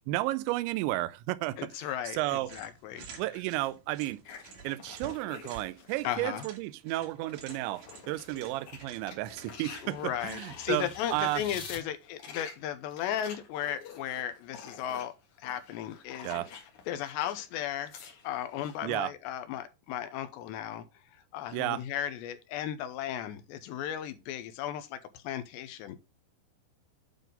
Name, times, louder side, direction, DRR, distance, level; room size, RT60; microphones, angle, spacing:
voice 1, 0.1-1.9 2.1-2.5 3.2-4.2 4.6-11.4 16.2-16.5 18.8-19.1 21.5-21.8, right 17 dB, 80° right, 2.7 m, -32 dB
voice 2, 1.6-3.1 6.0-6.5 9.8-15.1 15.4-16.3 16.9-18.0 18.2-20.8 21.1-26.0, left 11 dB, 85° left, 2.6 m, -35 dB
sound 1, 2.4-10.7, right 6 dB, 65° right, 4.1 m, -52 dB
sound 2, 4.2-6.6 7.0-11.3 11.9-17.4 17.7-18.8, left 6 dB, 60° left, 2.1 m, -49 dB
sound 3, 8.2-11.8, left 3 dB, 40° left, 2.4 m, -48 dB
9.2 x 3.9 x 5.2 m
omnidirectional pair, 5.5 m